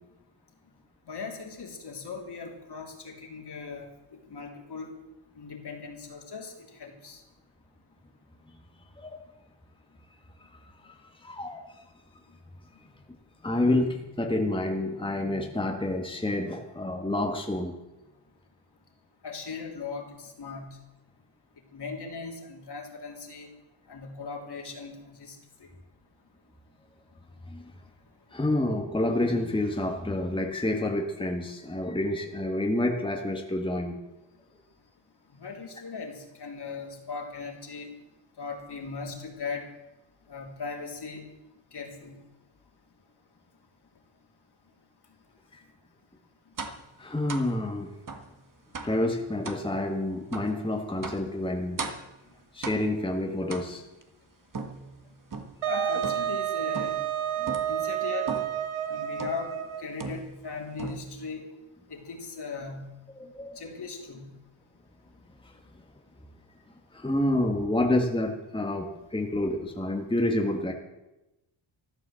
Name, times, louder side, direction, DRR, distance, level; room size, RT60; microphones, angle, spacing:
voice 1, 1.1-3.9 4.3-4.9 5.4-6.5 6.8-7.2 19.2-20.8 21.7-23.5 23.9-25.7 35.3-37.9 38.4-39.7 40.3-41.3 41.7-42.2 55.7-57.0 57.7-58.4 58.9-61.4 61.9-62.9 63.6-64.3, left 4 dB, 50° left, 1 dB, 3.5 m, -38 dB
voice 2, 10.8-11.6 13.4-17.7 27.5-27.7 28.3-34.0 47.0-47.9 48.8-51.9 52.5-53.8 55.7-55.9 57.4-57.5 58.8-59.0 63.2-63.6 65.4-65.5 66.9-70.7, left 1 dB, 10° left, 2 dB, 1.8 m, -28 dB
sound 1, 46.6-46.9 47.3-47.5 48.1-48.3 48.7-49.0 49.4-49.7 50.3-50.5 51.0-51.3 51.8-52.1 52.6-53.0 53.5-54.0 54.5-55.6 56.0-56.4 56.7-57.1 57.5-57.8 58.3-58.6 59.2-59.5 60.0-60.5 60.8-61.3, right 4 dB, 40° right, 1.7 m, -37 dB
Wind instrument woodwind instrument, 55.6-60.0, right 11 dB, 80° right, 1.4 m, -30 dB
14.5 x 11.5 x 7.7 m, 0.98 s
cardioid pair, 100°, 49 cm